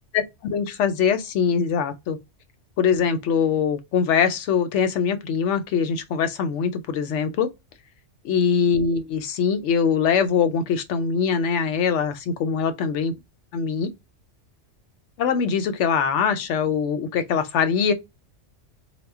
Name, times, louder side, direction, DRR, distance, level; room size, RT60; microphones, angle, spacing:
voice 1, 0.1-2.2 2.8-7.5 8.2-13.1 13.5-13.9 15.2-17.9, left 6 dB, 75° left, 0.9 m, -22 dB
2.1 x 2.1 x 3.5 m
omnidirectional pair, 1.2 m